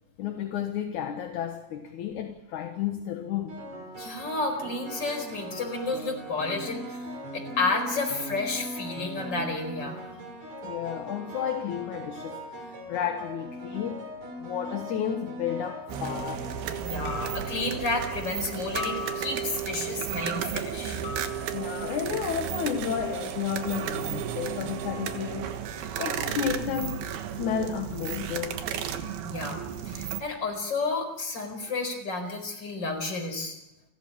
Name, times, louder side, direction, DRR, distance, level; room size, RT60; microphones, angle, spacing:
voice 1, 0.2-3.6 10.6-14.1 14.4-16.5 21.5-25.5 26.0-27.1 27.4-28.6, left 9 dB, 65° left, 2.5 m, -32 dB
sound 1, 1.9-2.2 3.5-18.3, equal, 50° right, 5.5 m, -40 dB
voice 2, 4.0-7.1 7.3-10.0 16.8-21.0 29.2-33.6, left 3 dB, 30° left, 5.1 m, -31 dB
sound 2, 15.6-15.9 17.1-17.6 18.7-19.6 21.0-21.7, left 4 dB, 20° right, 4.3 m, -38 dB
sound 3, 15.9-30.2, right 9 dB, 90° right, 3.4 m, -33 dB
30.0 x 14.0 x 8.7 m
omnidirectional pair, 4.3 m